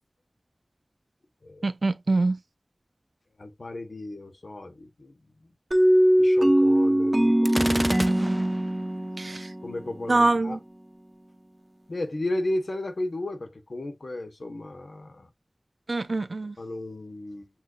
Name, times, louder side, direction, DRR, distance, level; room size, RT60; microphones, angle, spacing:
voice 1, 1.6-2.4 8.2-8.5 9.2-9.5 10.1-10.6 15.9-16.6, right 3 dB, 85° right, 0.6 m, -25 dB
voice 2, 3.4-5.1 6.2-7.9 9.6-10.6 11.9-15.3 16.6-17.5, left 1 dB, 90° left, 1.1 m, -34 dB
sound 1, 5.7-10.4, right 1 dB, 30° right, 1.0 m, -22 dB
Gunshot gunfire, 7.5-8.7, equal, 5° right, 0.3 m, -30 dB
7.1 x 2.4 x 2.5 m
wide cardioid pair, 50°, 0 cm